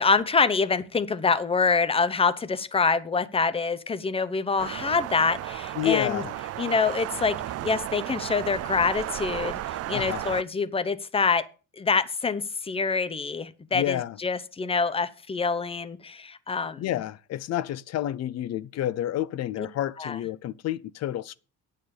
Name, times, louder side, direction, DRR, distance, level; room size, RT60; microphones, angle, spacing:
voice 1, 0.0-6.2 6.6-7.4 7.6-11.4 11.8-17.0 19.6-19.7 20.0-20.2, left 4 dB, 20° left, 0.7 m, -26 dB
sound 1, 4.6-10.4, right 13 dB, 50° right, 0.5 m, -34 dB
voice 2, 5.8-6.4 9.9-10.2 13.7-14.2 16.8-21.4, left 12 dB, 55° left, 0.6 m, -29 dB
9.4 x 6.6 x 6.8 m
cardioid pair, 145°, 31 cm